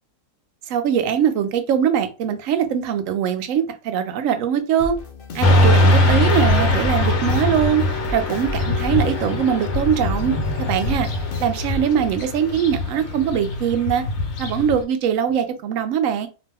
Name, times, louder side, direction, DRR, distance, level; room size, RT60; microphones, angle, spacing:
voice 1, 0.7-5.0 5.3-11.1 11.4-14.0 14.4-16.3, right 8 dB, 70° right, 8 dB, 0.9 m, -22 dB
Frolic Loop, 4.8-11.8, equal, 55° left, 0.6 m, -33 dB
Motorcycle / Traffic noise roadway noise, 5.4-14.8, left 1 dB, 70° left, 1.1 m, -21 dB
2.9 x 2.1 x 3.3 m, 0.32 s
omnidirectional pair, 1.5 m